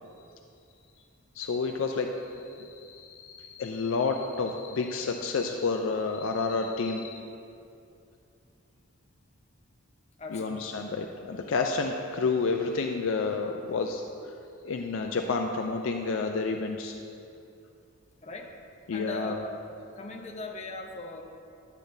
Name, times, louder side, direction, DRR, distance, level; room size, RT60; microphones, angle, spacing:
voice 1, 1.4-7.2 10.3-14.0 14.6-17.0 18.9-19.4, left 4 dB, 60° left, 4 dB, 0.4 m, -30 dB
voice 2, 10.2-10.6 18.2-18.5 18.9-19.6 19.9-21.2, left 2 dB, 30° left, 1 dB, 0.7 m, -39 dB
10.5 x 8.2 x 2.6 m, 2.6 s
head